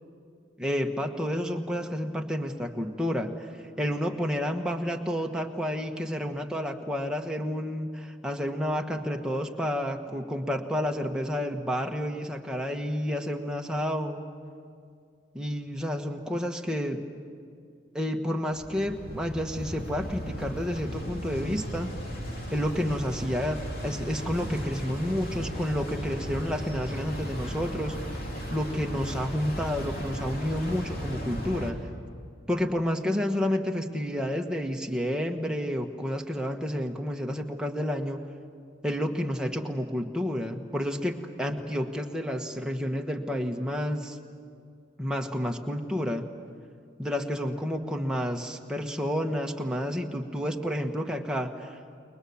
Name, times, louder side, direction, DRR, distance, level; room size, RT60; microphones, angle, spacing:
voice 1, 0.6-3.5 3.8-14.2 15.3-17.0 17.9-21.9 22.5-31.8 32.5-38.2 38.8-44.2 45.0-46.3 47.0-51.8, equal, 5° right, 2 dB, 1.4 m, -30 dB
sound 1, 18.5-31.7, equal, 50° left, 3.1 m, -36 dB
30.0 x 22.5 x 7.2 m, 2.3 s
head